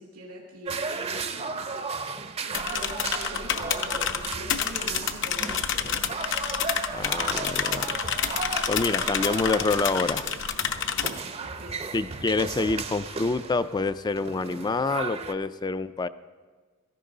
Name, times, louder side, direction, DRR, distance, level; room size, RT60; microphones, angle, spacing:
voice 1, 0.0-1.6 2.4-6.1 11.2-11.8, equal, 90° right, -2 dB, 2.4 m, -43 dB
sound 1, 0.7-15.3, right 4 dB, 30° right, 0.6 m, -35 dB
sound 2, 2.5-11.1, left 8 dB, 60° left, 0.8 m, -29 dB
voice 2, 6.9-8.0 8.7-10.3 10.9-11.1 11.9-16.1, left 3 dB, 20° left, 14 dB, 0.3 m, -27 dB
16.5 x 14.0 x 3.9 m, 1.4 s
head